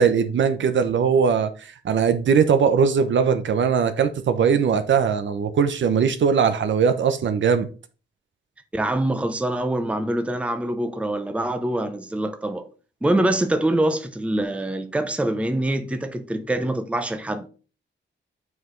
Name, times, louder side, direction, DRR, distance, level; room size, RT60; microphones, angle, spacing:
voice 1, 0.0-1.5 1.8-7.7, right 6 dB, 70° right, 0.8 m, -20 dB
voice 2, 8.7-12.7 13.0-17.5, right 1 dB, 5° right, 0.6 m, -24 dB
7.8 x 4.8 x 3.2 m
wide cardioid pair, 150°, 20 cm